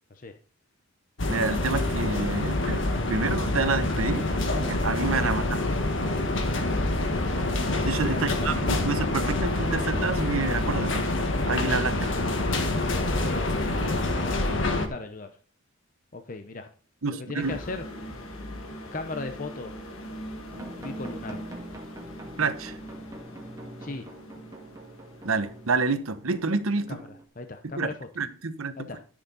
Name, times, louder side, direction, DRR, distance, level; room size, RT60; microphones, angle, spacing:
sound 1, 1.2-14.9, left 2 dB, 65° left, 1.5 m, -26 dB
voice 1, 1.3-4.3 4.6-5.4 7.8-11.1 11.5-12.1 17.0-17.6 22.4-22.8 25.2-27.0 27.6-28.9, right 4 dB, 85° right, 1.0 m, -28 dB
voice 2, 6.2-6.9 8.1-8.5 12.0-12.1 12.8-15.3 16.1-16.7 17.1-17.8 18.9-19.7 20.8-21.4 23.8-24.1 26.9-27.0 27.4-27.9 28.8-29.0, left 3 dB, 40° left, 0.7 m, -38 dB
sound 2, 17.4-26.0, equal, 80° left, 1.9 m, -42 dB
sound 3, 20.5-27.2, right 1 dB, 15° right, 1.9 m, -44 dB
13.5 x 6.5 x 4.1 m
head